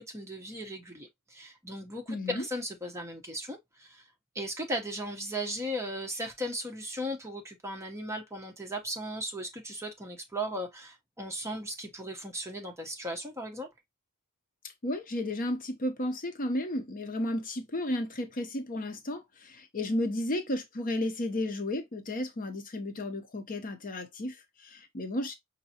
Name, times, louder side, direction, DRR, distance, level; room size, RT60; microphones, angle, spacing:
voice 1, 0.0-4.0 4.3-13.7, equal, 15° right, 0.9 m, -37 dB
voice 2, 2.1-2.4 14.8-25.3, left 1 dB, 40° left, 0.7 m, -33 dB
5.5 x 2.6 x 2.8 m
head